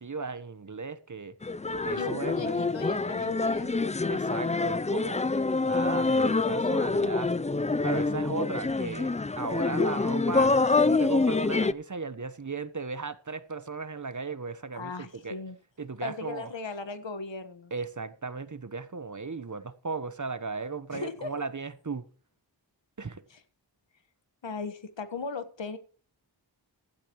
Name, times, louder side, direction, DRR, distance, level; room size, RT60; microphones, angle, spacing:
voice 1, 0.0-1.4 1.8-2.6 4.1-5.3 5.6-7.3 7.8-15.4 15.8-16.5 17.7-22.1 23.0-23.2, right 4 dB, 45° right, 1.1 m, -36 dB
sound 1, 1.4-11.7, left 3 dB, 15° left, 0.4 m, -26 dB
voice 2, 1.9-3.8 14.7-15.6 16.0-17.7 20.9-21.3 24.4-25.8, left 4 dB, 90° left, 1.6 m, -37 dB
15.5 x 11.5 x 3.1 m
wide cardioid pair, 60°, 43 cm